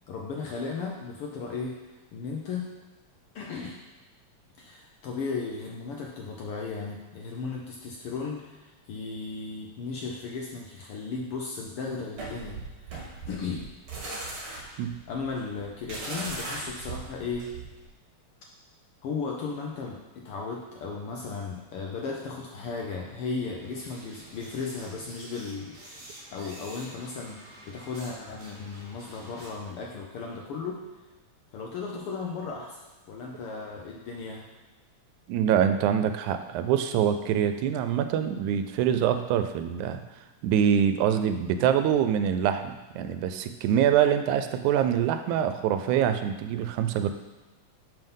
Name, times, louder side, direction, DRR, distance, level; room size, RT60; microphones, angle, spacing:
voice 1, 0.0-1.8 2.1-2.7 3.3-3.8 4.6-13.7 14.7-17.5 19.0-25.8 26.3-30.8 31.5-32.8 33.1-34.5, left 4 dB, 75° left, -1 dB, 1.3 m, -35 dB
sound 1, 12.2-17.9, right 2 dB, 55° right, 2.4 m, -38 dB
sound 2, 23.6-28.1 28.4-29.7, right 1 dB, 30° right, 2.2 m, -48 dB
voice 2, 35.3-40.0 40.4-47.1, right 9 dB, 90° right, 9 dB, 2.0 m, -25 dB
5.8 x 5.7 x 5.4 m, 1.2 s
omnidirectional pair, 3.3 m